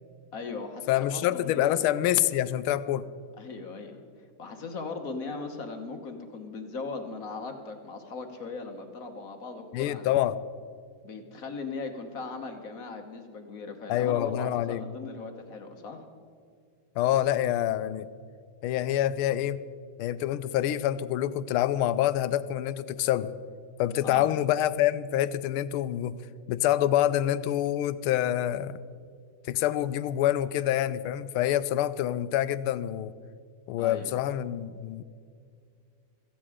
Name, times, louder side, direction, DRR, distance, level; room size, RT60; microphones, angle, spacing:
voice 1, 0.3-1.8 3.4-3.9 4.4-10.1 11.0-16.0 24.0-24.3 33.8-34.1, left 4 dB, 50° left, 5 dB, 1.4 m, -38 dB
voice 2, 0.9-3.1 9.7-10.4 13.9-14.8 17.0-18.1 18.6-19.6 20.0-23.3 23.8-26.2 26.5-28.8 29.5-33.1 33.7-35.0, left 12 dB, 85° left, 15 dB, 1.5 m, -26 dB
17.0 x 14.5 x 5.0 m, 2.2 s
omnidirectional pair, 2.3 m